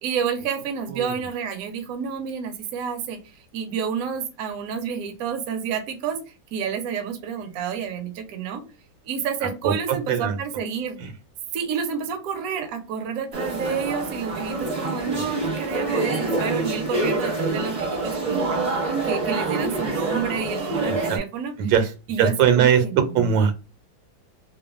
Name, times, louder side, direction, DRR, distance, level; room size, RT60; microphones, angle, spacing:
voice 1, 0.0-6.2 6.5-8.6 9.0-11.0 11.5-21.6 22.1-23.4, right 7 dB, 65° right, 5 dB, 0.9 m, -29 dB
voice 2, 9.6-10.4 20.9-21.2 21.6-21.9 22.2-23.6, right 8 dB, 85° right, 8 dB, 1.4 m, -21 dB
sound 1, 13.3-21.2, right 3 dB, 50° right, 0.4 m, -26 dB
3.2 x 2.1 x 2.4 m, 0.30 s
omnidirectional pair, 2.1 m